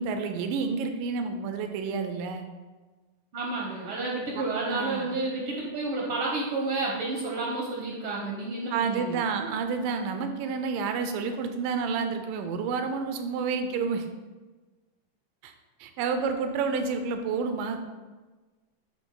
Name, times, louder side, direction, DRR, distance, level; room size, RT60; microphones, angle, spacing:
voice 1, 0.0-2.5 4.3-5.1 8.7-14.1 15.4-15.5 15.8-17.8, right 5 dB, 85° right, 6 dB, 2.3 m, -29 dB
voice 2, 3.3-9.2, right 3 dB, 70° right, -3 dB, 1.3 m, -30 dB
9.9 x 3.4 x 3.8 m, 1.3 s
omnidirectional pair, 3.8 m